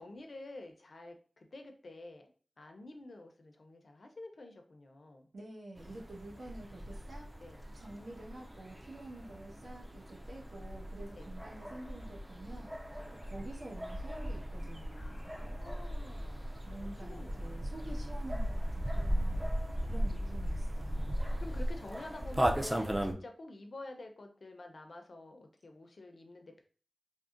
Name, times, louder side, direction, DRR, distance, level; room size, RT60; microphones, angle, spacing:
voice 1, 0.0-2.3 2.6-5.3 7.4-7.6 11.1-11.3 13.0-13.1 15.0-17.8 19.7-20.6 21.2-26.6, left 2 dB, 65° left, 5 dB, 0.5 m, -50 dB
voice 2, 5.3-7.3 7.7-12.7 13.2-15.3 16.6-19.5 19.8-21.2, right 2 dB, 75° right, -3 dB, 1.0 m, -48 dB
sound 1, 5.8-23.1, equal, 15° right, 0.4 m, -37 dB
3.6 x 2.1 x 2.4 m, 0.41 s
wide cardioid pair, 75°, 0 cm